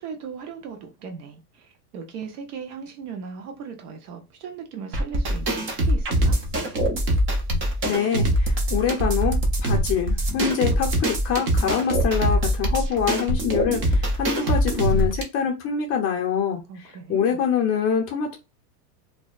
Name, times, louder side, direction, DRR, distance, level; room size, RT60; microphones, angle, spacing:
voice 1, 0.0-6.4 16.7-17.4, right 6 dB, 65° right, 0.9 m, -38 dB
sound 1, 4.9-15.2, equal, 25° right, 0.6 m, -23 dB
voice 2, 7.8-16.6 17.1-18.4, left 7 dB, 30° left, 0.6 m, -25 dB
2.7 x 2.1 x 2.3 m
supercardioid pair, 125°, 49 cm